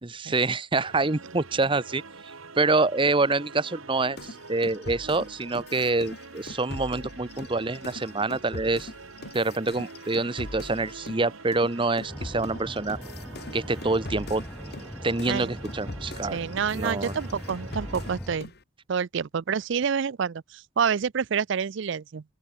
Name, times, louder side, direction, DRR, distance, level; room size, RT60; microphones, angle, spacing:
voice 1, 0.0-2.0 2.6-8.9 9.3-13.0 13.5-14.4 15.0-16.4 16.7-17.1, right 3 dB, 25° right, 0.9 m, -26 dB
sound 1, 0.8-18.2, right 3 dB, 85° right, 2.2 m, -46 dB
sound 2, 4.2-11.2 11.5-18.6, left 2 dB, 50° left, 2.2 m, -42 dB
sound 3, 12.1-18.4, equal, 5° left, 3.4 m, -40 dB
voice 2, 16.3-18.5 18.9-22.2, right 6 dB, 60° right, 0.4 m, -28 dB
open air
head